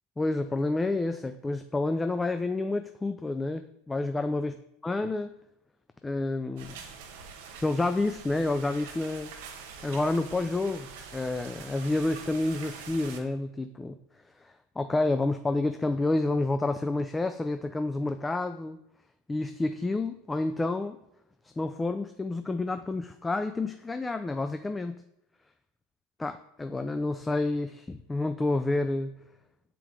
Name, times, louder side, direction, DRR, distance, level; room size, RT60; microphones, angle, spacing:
voice 1, 0.2-4.5 4.8-5.3 6.0-6.8 7.6-9.3 9.8-14.0 14.4-18.8 19.3-21.0 21.6-25.0 26.2-29.1, left 2 dB, 15° left, 9 dB, 0.4 m, -29 dB
sound 1, 6.6-13.2, right 6 dB, 75° right, 1.2 m, -45 dB
7.1 x 4.5 x 3.8 m, 0.83 s
hypercardioid pair, 100°, 0 cm